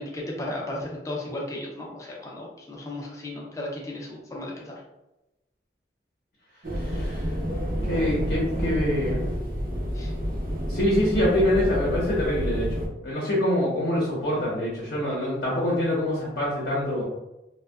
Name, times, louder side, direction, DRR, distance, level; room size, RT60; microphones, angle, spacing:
voice 1, 0.0-4.8 9.9-10.1, left 1 dB, 20° left, -2 dB, 0.4 m, -35 dB
sound 1, 6.6-12.9, equal, 50° right, 0.5 m, -29 dB
voice 2, 6.7-7.4 7.9-9.2 10.7-17.0, left 1 dB, 60° left, -5 dB, 0.7 m, -25 dB
2.5 x 2.2 x 2.2 m, 0.95 s
head